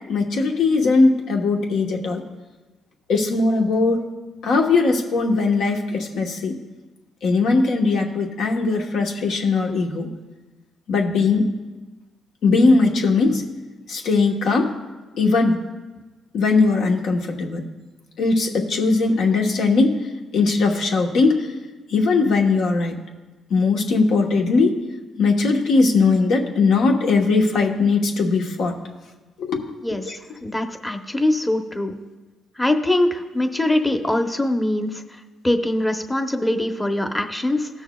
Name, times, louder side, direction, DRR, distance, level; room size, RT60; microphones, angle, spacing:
voice 1, 0.1-2.2 3.1-4.0 4.4-6.5 7.2-10.1 10.9-11.4 12.4-13.4 13.9-14.7 15.2-15.6 16.3-17.6 18.2-19.9 20.3-21.4 21.9-22.9 23.5-24.8 25.2-28.8 29.4-29.6 30.0-30.2, left 3 dB, 75° left, 2 dB, 1.1 m, -19 dB
voice 2, 30.4-31.9 32.6-35.0 35.4-37.7, left 1 dB, 10° left, 6 dB, 0.8 m, -22 dB
18.5 x 6.3 x 2.3 m, 1.2 s
cardioid pair, 90°, 0 cm